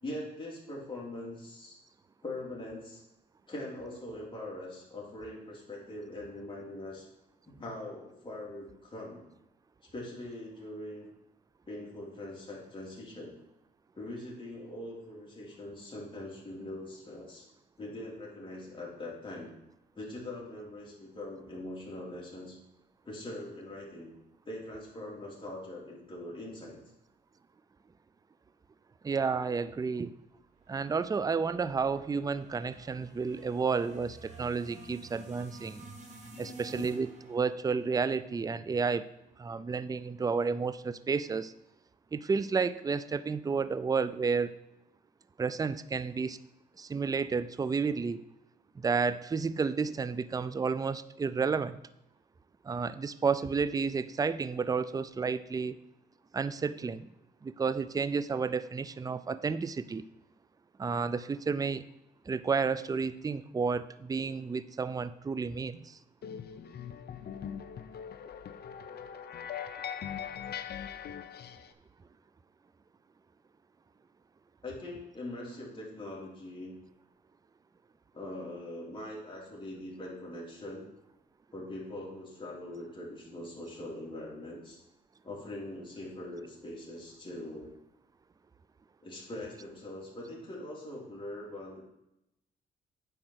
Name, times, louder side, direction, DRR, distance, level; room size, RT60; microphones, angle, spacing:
voice 1, 0.0-1.8 2.2-3.0 3.5-7.1 7.5-9.2 9.9-11.1 11.7-13.3 13.9-17.5 17.8-19.5 19.9-22.6 23.0-24.2 24.4-26.8 36.3-36.9 74.6-76.7 78.1-80.9 81.5-84.8 85.2-87.7 89.0-91.8, left 1 dB, 25° left, -4 dB, 3.2 m, -42 dB
voice 2, 29.0-30.2 30.7-35.9 36.4-39.1 39.4-41.5 42.1-44.5 45.4-46.4 46.8-48.2 48.8-51.8 52.6-55.8 56.3-57.1 57.4-60.0 60.8-61.8 62.3-66.0, right 5 dB, 20° right, 15 dB, 0.4 m, -31 dB
sound 1, 30.6-38.9, right 2 dB, 35° right, 2.0 m, -52 dB
sound 2, 66.2-71.7, left 8 dB, 55° left, 0.7 m, -41 dB
9.0 x 4.9 x 6.4 m, 0.86 s
cardioid pair, 90°, 20 cm